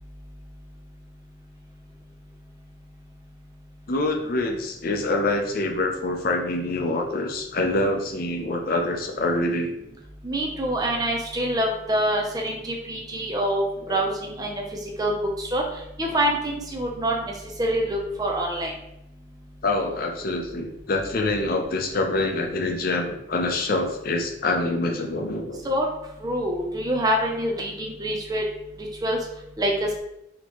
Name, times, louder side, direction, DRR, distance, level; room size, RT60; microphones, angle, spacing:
voice 1, 3.9-9.7 13.9-14.0 19.6-25.6, left 2 dB, 50° left, 3 dB, 0.6 m, -25 dB
voice 2, 10.2-13.6 13.9-14.6 15.0-15.6 16.0-17.3 17.6-18.7 25.6-25.9 26.2-28.4 29.0-29.2 29.6-30.0, right 1 dB, 20° right, 0 dB, 0.5 m, -25 dB
4.2 x 2.9 x 2.9 m, 0.84 s
head